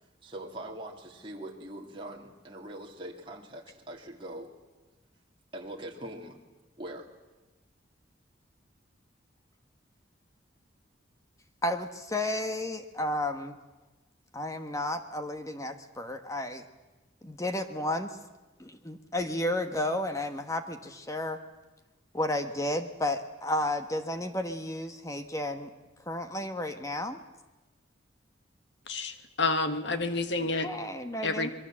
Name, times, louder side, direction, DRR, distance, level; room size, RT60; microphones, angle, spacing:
voice 1, 0.2-4.5 5.5-6.4 6.8-7.1, right 1 dB, 25° right, 0 dB, 2.6 m, -42 dB
voice 2, 11.6-13.6 14.3-16.6 17.2-18.2 18.6-21.4 22.1-25.7 26.1-27.2 30.6-31.5, left 1 dB, 15° left, 8 dB, 1.1 m, -32 dB
voice 3, 28.9-30.7 31.2-31.5, left 3 dB, 70° left, 9 dB, 1.6 m, -29 dB
26.0 x 22.5 x 7.6 m, 1.1 s
head